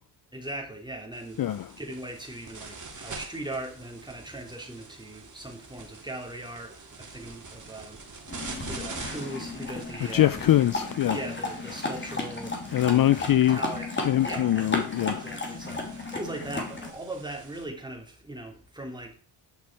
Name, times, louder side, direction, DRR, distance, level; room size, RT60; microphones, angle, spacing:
voice 1, 0.3-1.4 1.8-8.4 8.7-10.4 11.1-14.7 15.2-19.1, right 1 dB, 10° right, 3.3 m, -39 dB
sound 1, 1.1-17.6, right 4 dB, 40° right, 2.9 m, -46 dB
sound 2, 8.3-16.9, left 2 dB, 25° left, 3.2 m, -34 dB
voice 2, 10.1-11.2 12.7-13.6 14.0-15.3, left 12 dB, 50° left, 0.5 m, -23 dB
10.5 x 6.1 x 4.8 m
cardioid pair, 70°, 46 cm